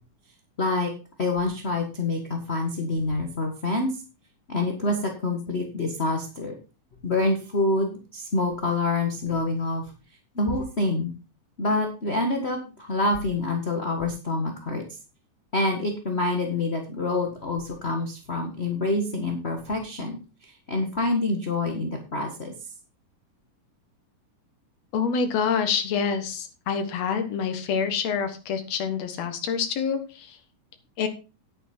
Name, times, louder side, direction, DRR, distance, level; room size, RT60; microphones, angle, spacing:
voice 1, 0.6-0.9 1.2-4.0 4.5-6.5 7.0-9.9 10.3-11.1 11.6-14.8 15.5-20.2 20.4-22.5, left 2 dB, 35° left, 2 dB, 1.1 m, -26 dB
voice 2, 24.9-30.4 31.0-31.1, left 6 dB, 60° left, 7 dB, 2.5 m, -27 dB
10.5 x 9.0 x 4.4 m, 0.32 s
omnidirectional pair, 3.8 m